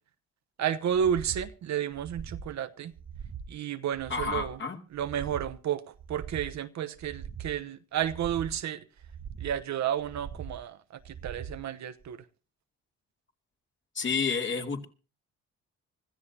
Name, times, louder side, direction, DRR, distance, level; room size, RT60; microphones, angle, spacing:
voice 1, 0.6-2.9 3.5-4.6 4.9-8.9 9.4-12.2, right 9 dB, 65° right, 1.1 m, -32 dB
sound 1, 0.9-1.5 1.9-2.5 2.9-3.5 3.9-4.5 4.9-5.5 6.0-6.5 7.0-7.6 8.0-8.6 9.0-9.6 10.0-10.6 11.0-11.6 12.0-12.1, right 7 dB, 45° right, 1.1 m, -42 dB
voice 2, 4.1-4.8 13.9-14.8, left 5 dB, 40° left, 2.8 m, -30 dB
25.0 x 14.0 x 2.8 m
cardioid pair, 90°, 30 cm